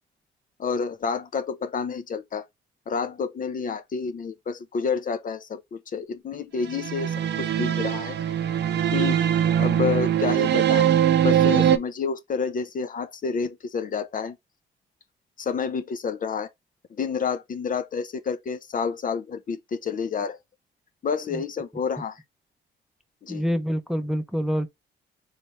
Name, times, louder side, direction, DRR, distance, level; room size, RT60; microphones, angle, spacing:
voice 1, 0.6-2.5 2.9-8.2 8.9-9.3 9.6-10.9 11.2-14.4 15.4-16.5 16.9-20.4 21.0-22.2 23.2-23.4, left 5 dB, 45° left, 0.6 m, -29 dB
sound 1, 6.7-11.8, right 10 dB, 60° right, 0.6 m, -22 dB
voice 2, 23.3-24.7, equal, ahead, 0.6 m, -26 dB
3.4 x 3.2 x 4.0 m
cardioid pair, 90°, 20 cm